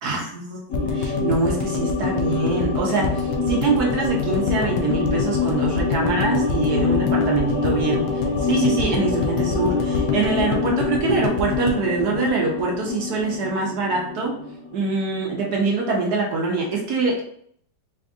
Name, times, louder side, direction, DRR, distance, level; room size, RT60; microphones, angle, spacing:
voice 1, 0.0-3.1 3.5-8.0 8.4-14.3 14.7-17.2, right 4 dB, 70° right, -1 dB, 1.2 m, -24 dB
sound 1, 0.7-12.9 13.2-13.3 13.5-13.6, left 5 dB, 85° left, 1.2 m, -28 dB
sound 2, 0.7-15.3 15.5-15.6, left 4 dB, 55° left, 1.1 m, -25 dB
3.5 x 2.5 x 3.5 m, 0.64 s
omnidirectional pair, 1.9 m